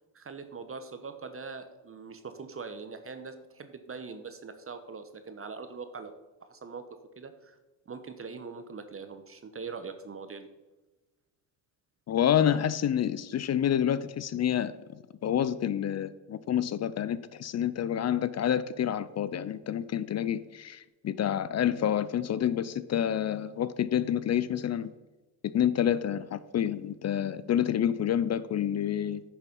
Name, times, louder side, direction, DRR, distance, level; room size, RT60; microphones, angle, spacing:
voice 1, 0.1-6.1 6.5-7.6 7.9-10.5, right 4 dB, 25° right, 1.1 m, -42 dB
voice 2, 12.1-14.7 15.2-24.9 25.5-29.2, left 9 dB, 35° left, 0.6 m, -28 dB
9.9 x 6.9 x 5.4 m
hypercardioid pair, 70°, 48 cm